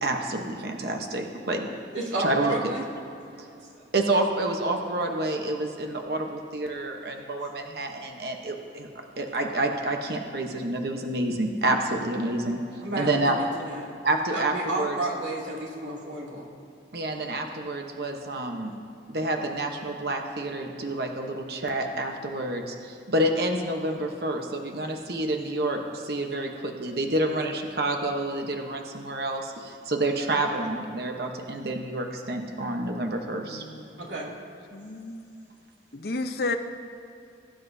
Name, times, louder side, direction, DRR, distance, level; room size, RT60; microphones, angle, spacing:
voice 1, 0.0-1.7 2.2-2.6 3.9-8.9 9.2-12.6 13.0-13.4 14.0-15.0 16.9-18.7 19.1-33.6, right 1 dB, 60° right, 3 dB, 1.0 m, -28 dB
voice 2, 1.9-2.9 12.8-13.9 14.3-16.5 34.0-34.3, right 2 dB, 85° right, -3 dB, 2.6 m, -31 dB
voice 3, 33.4-34.0 34.7-35.2 35.9-36.6, left 3 dB, 55° left, 7 dB, 0.8 m, -32 dB
21.5 x 10.0 x 2.7 m, 2.7 s
head